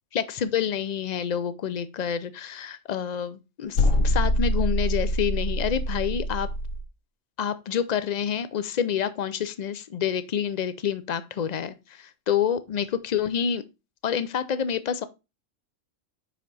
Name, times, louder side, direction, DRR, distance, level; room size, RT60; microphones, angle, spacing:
voice 1, 0.1-6.5 7.4-13.6 14.0-15.0, left 8 dB, 65° left, 0.4 m, -28 dB
sound 1, 3.7-6.8, left 1 dB, 90° left, 1.4 m, -24 dB
5.7 x 5.1 x 4.0 m
omnidirectional pair, 1.3 m